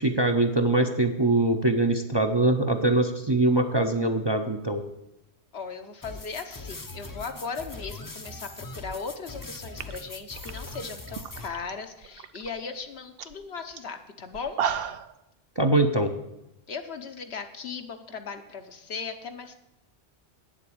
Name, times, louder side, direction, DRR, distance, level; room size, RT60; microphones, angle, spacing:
voice 1, 0.0-4.8 15.6-16.1, right 2 dB, 30° right, 4 dB, 0.6 m, -23 dB
voice 2, 5.5-14.6 16.7-19.6, left 5 dB, 70° left, 6 dB, 1.2 m, -37 dB
sound 1, 6.0-11.5, left 3 dB, 20° left, 0.6 m, -41 dB
sound 2, 9.4-9.5 9.7-11.7 12.0-12.5 12.8-12.9 13.2-13.4 13.8-13.9 14.3-15.1, right 8 dB, 65° right, 0.8 m, -33 dB
8.9 x 7.4 x 8.5 m, 0.90 s
omnidirectional pair, 1.1 m